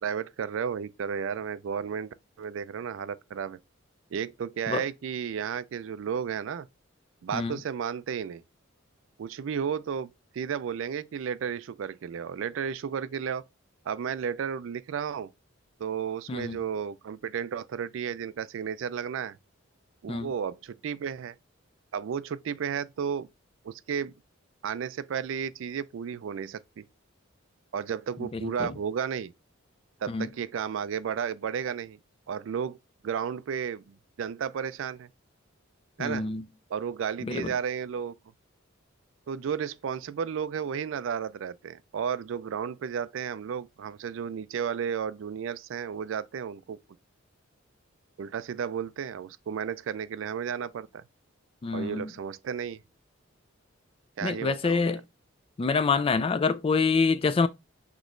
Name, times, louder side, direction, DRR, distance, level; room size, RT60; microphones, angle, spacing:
voice 1, 0.0-3.6 4.1-6.7 7.2-8.4 9.2-13.4 13.9-15.3 15.8-19.4 20.0-21.4 21.9-23.3 23.6-24.1 24.6-26.9 27.7-29.3 30.0-32.0 32.3-32.8 33.0-35.1 36.0-36.3 36.7-38.1 39.3-46.8 48.2-51.0 51.7-52.8 54.2-54.9, right 7 dB, 70° right, 0.3 m, -33 dB
voice 2, 28.2-28.7 30.1-30.3 36.0-36.4 37.2-37.5 51.6-52.1 54.2-55.0 55.6-57.5, left 4 dB, 30° left, 0.3 m, -26 dB
6.1 x 3.0 x 2.5 m
head